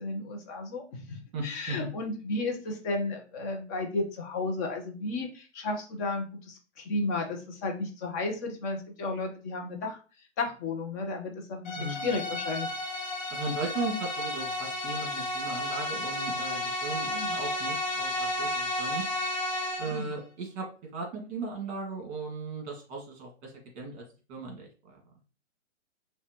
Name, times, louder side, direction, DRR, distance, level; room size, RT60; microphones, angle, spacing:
voice 1, 0.0-10.0 10.4-12.7 17.1-17.4 19.8-20.1, left 2 dB, 15° left, 2 dB, 0.4 m, -33 dB
voice 2, 1.3-1.9 11.8-12.2 13.3-19.0 19.8-20.7 20.9-24.0 24.3-25.0, right 3 dB, 35° right, 0 dB, 1.6 m, -37 dB
sound 1, 11.7-20.1, left 1 dB, 40° left, 0.9 m, -32 dB
5.5 x 2.1 x 2.8 m, 0.35 s
figure-of-eight pair, 120°, 36 cm